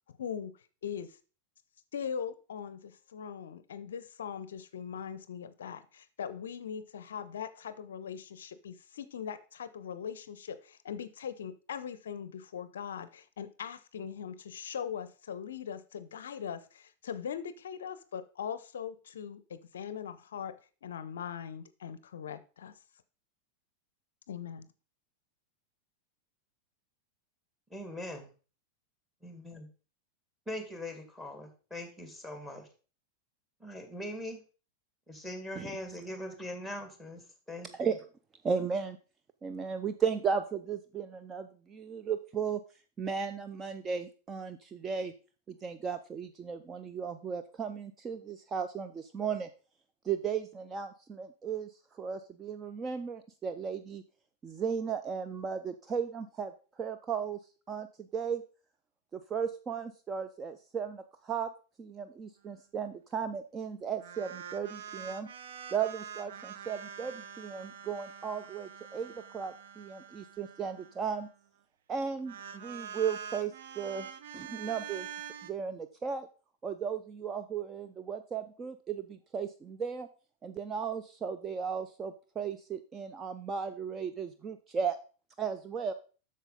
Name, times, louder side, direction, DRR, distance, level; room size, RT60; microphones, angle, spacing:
voice 1, 0.1-1.2 1.9-22.8 24.3-24.7, left 8 dB, 65° left, 14 dB, 0.5 m, -40 dB
voice 2, 27.7-28.3 29.2-29.7 30.5-32.7 33.6-34.4 35.1-37.2 37.5-37.9, left 1 dB, 5° right, 5 dB, 2.0 m, -41 dB
voice 3, 38.4-39.0 39.4-42.6 43.0-45.1 45.5-49.5 50.0-54.0 54.4-56.5 56.8-57.4 57.7-58.4 59.1-61.5 61.8-65.3 65.7-71.3 71.9-74.1 74.3-75.1 75.4-76.3 76.6-80.1 80.4-85.0 85.4-85.9, right 6 dB, 20° right, 9 dB, 0.5 m, -35 dB
sound 1, 64.0-71.4 72.2-75.5, right 7 dB, 60° right, 0.7 m, -45 dB
8.0 x 6.4 x 3.9 m, 0.36 s
figure-of-eight pair, 90°, 0 cm